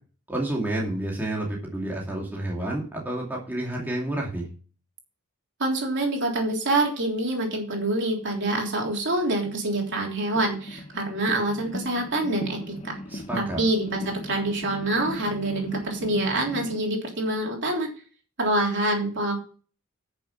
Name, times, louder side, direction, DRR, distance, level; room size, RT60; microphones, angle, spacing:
voice 1, 0.3-4.5 13.1-13.6, right 1 dB, 10° right, -3 dB, 2.5 m, -30 dB
voice 2, 5.6-13.0 13.3-17.9 18.4-19.4, right 2 dB, 55° right, 0 dB, 3.4 m, -26 dB
sound 1, 8.2-8.3 9.0-16.8, equal, 30° left, 0.8 m, -37 dB
10.5 x 6.8 x 5.8 m, 0.38 s
head